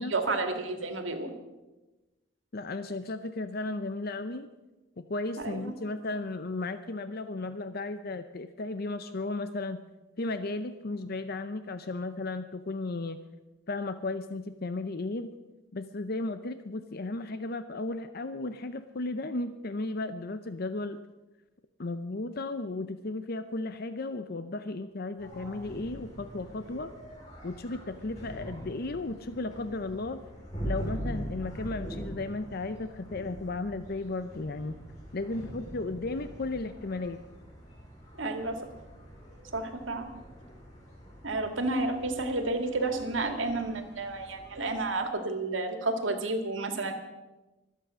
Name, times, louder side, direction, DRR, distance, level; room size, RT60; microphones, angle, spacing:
voice 1, 0.1-1.3 5.4-5.7 38.2-38.6 39.5-40.1 41.2-46.9, right 2 dB, 80° right, 6 dB, 2.0 m, -31 dB
voice 2, 2.5-4.5 5.0-9.8 10.2-13.2 13.7-15.3 15.7-21.0 21.8-26.9 27.4-30.2 30.6-34.8 35.1-37.2, left 2 dB, 50° left, 11 dB, 0.6 m, -35 dB
sound 1, 25.2-44.8, equal, 35° left, 5.6 m, -43 dB
24.0 x 8.4 x 6.2 m, 1.1 s
head